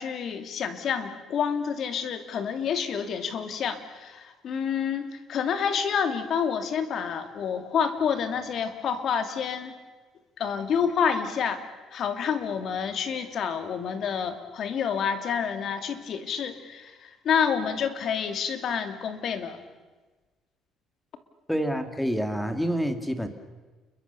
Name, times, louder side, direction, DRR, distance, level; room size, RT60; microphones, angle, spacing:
voice 1, 0.0-9.7 10.4-11.6 11.9-19.6, left 7 dB, 50° left, 9 dB, 2.6 m, -28 dB
voice 2, 21.5-23.3, equal, 5° left, 8 dB, 2.2 m, -27 dB
29.5 x 22.5 x 6.9 m, 1.3 s
cardioid pair, 140°, 0 cm